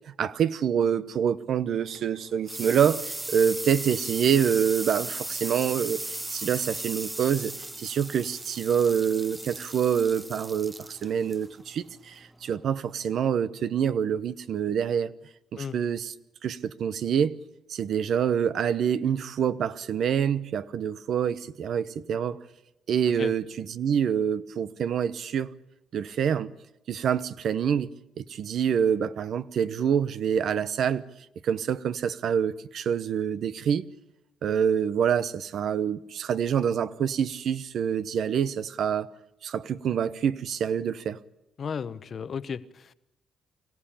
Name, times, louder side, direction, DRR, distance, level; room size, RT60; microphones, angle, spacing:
voice 1, 0.1-7.5 7.8-15.1 15.5-16.1 16.4-17.4 17.7-22.4 22.9-25.5 25.9-26.5 26.9-27.9 28.2-31.0 31.4-33.9 34.4-39.1 39.4-41.2, right 8 dB, 65° right, 0.9 m, -26 dB
sound 1, 1.7-13.0, right 2 dB, 15° right, 0.8 m, -37 dB
voice 2, 41.6-42.9, left 6 dB, 50° left, 1.0 m, -34 dB
25.0 x 15.5 x 8.7 m
cardioid pair, 90°, 0 cm